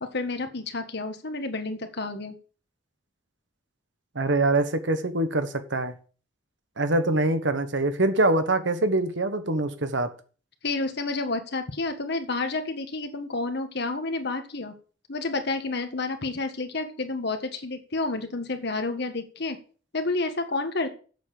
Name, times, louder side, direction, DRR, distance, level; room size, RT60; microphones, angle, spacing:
voice 1, 0.0-2.3 10.6-14.7 15.1-19.6 19.9-20.9, left 3 dB, 60° left, 1.6 m, -30 dB
voice 2, 4.1-5.9 6.8-10.1, right 2 dB, 65° right, 1.3 m, -24 dB
8.3 x 7.2 x 6.6 m
head